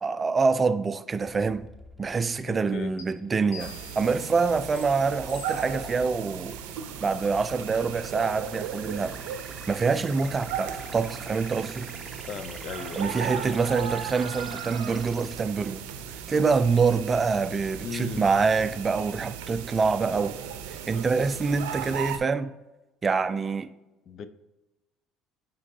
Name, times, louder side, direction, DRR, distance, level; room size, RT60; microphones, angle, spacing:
voice 1, 0.0-1.7 2.0-6.6 7.0-9.2 9.7-11.9 13.0-15.8 16.1-20.4 20.7-22.5 23.0-23.7, right 4 dB, 30° right, 0.3 m, -26 dB
sound 1, 1.2-15.3, right 2 dB, 10° right, 0.8 m, -47 dB
voice 2, 2.5-2.9 12.2-13.5 17.8-18.5 24.1-24.3, left 6 dB, 55° left, 0.4 m, -37 dB
sound 2, 3.0-3.1 3.5-4.1 4.8-4.9 5.3-5.8 6.5-6.6 7.0-7.2, left 7 dB, 80° left, 1.9 m, -45 dB
sound 3, 3.6-22.2, right 8 dB, 90° right, 0.5 m, -37 dB
9.5 x 3.7 x 2.7 m
supercardioid pair, 80°, 0 cm